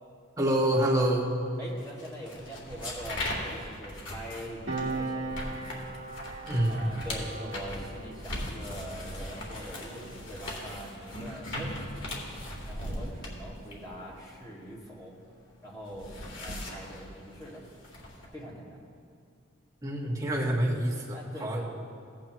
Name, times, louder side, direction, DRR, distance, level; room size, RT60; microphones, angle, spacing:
voice 1, 0.4-1.3 6.4-6.8 19.8-21.6, right 1 dB, 15° right, -4 dB, 1.5 m, -27 dB
voice 2, 1.6-5.6 6.7-12.1 12.6-15.1 15.6-17.7 18.3-18.8 21.1-21.7, equal, 20° left, -5 dB, 2.1 m, -43 dB
sound 1, 1.8-15.3 15.6-18.3, left 1 dB, 75° left, 2.0 m, -39 dB
Piano, 4.7-11.7 12.0-12.2, right 3 dB, 80° right, 1.2 m, -40 dB
16.5 x 8.8 x 3.0 m, 2.4 s
head